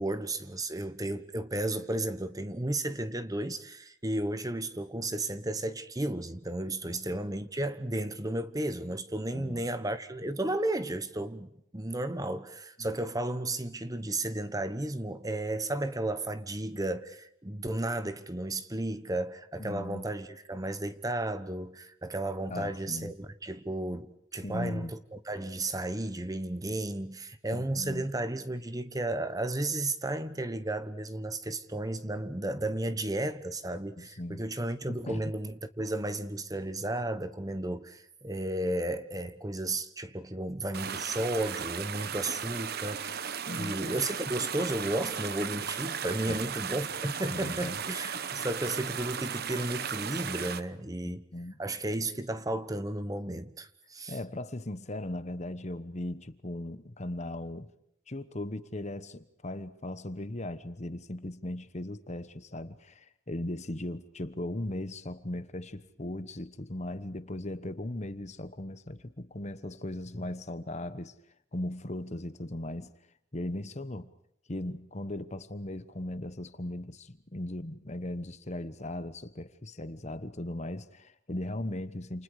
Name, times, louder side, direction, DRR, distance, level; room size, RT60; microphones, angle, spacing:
voice 1, 0.0-24.1 24.3-51.2 51.6-54.2, right 1 dB, 20° right, 1.1 m, -33 dB
voice 2, 6.8-7.2 9.3-9.7 19.6-20.1 22.5-23.1 24.4-24.9 27.5-28.1 34.0-34.4 34.9-35.3 43.5-44.0 46.2-46.4 47.3-47.8 51.0-51.6 54.1-57.7 58.1-71.1 71.5-72.9 73.3-74.1 74.5-82.2, left 1 dB, 35° left, 1.1 m, -38 dB
sound 1, 40.7-50.6, right 7 dB, 50° right, 1.0 m, -36 dB
29.0 x 28.5 x 4.9 m
head